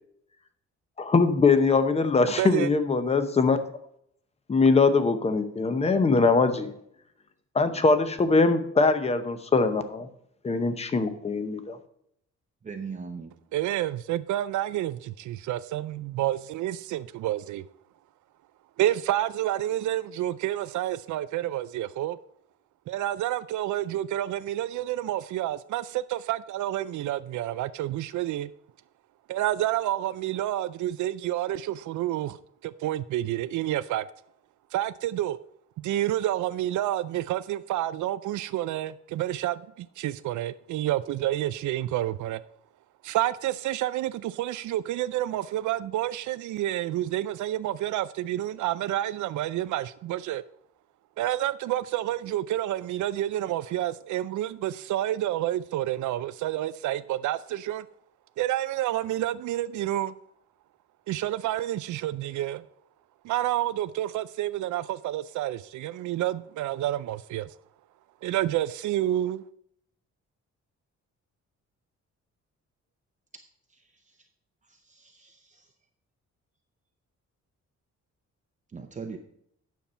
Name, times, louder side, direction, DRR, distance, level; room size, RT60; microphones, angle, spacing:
voice 1, 1.0-3.6 4.5-6.7 7.5-10.1 10.4-11.8, left 4 dB, 20° left, 0.7 m, -22 dB
voice 2, 2.4-2.7 13.5-17.6 18.8-22.2 22.9-28.5 29.3-32.4 32.6-34.1 34.7-35.4 35.8-42.4 43.0-50.4 51.2-57.9 58.4-60.1 61.1-62.6 63.2-67.5 68.2-69.4, right 13 dB, 90° right, 0.5 m, -29 dB
voice 3, 12.6-13.3 74.7-75.7 78.7-79.2, right 5 dB, 25° right, 0.6 m, -39 dB
9.4 x 7.0 x 4.3 m
wide cardioid pair, 165°, 29 cm